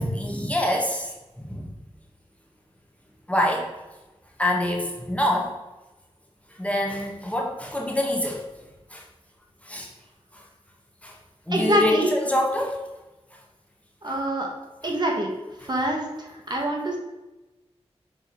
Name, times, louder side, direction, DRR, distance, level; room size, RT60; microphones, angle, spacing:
voice 1, 0.0-1.7 3.3-3.7 4.4-5.5 6.5-8.4 8.9-9.0 9.6-9.9 10.3-10.4 11.0-11.1 11.5-12.8 14.8-14.9 15.6-15.7, left 1 dB, 10° left, -1 dB, 1.5 m, -26 dB
voice 2, 11.5-12.1 14.0-14.5 14.8-15.3 15.7-17.0, right 1 dB, 40° right, 0 dB, 1.5 m, -25 dB
6.7 x 3.8 x 4.7 m, 1.1 s
cardioid pair, 50°, 11 cm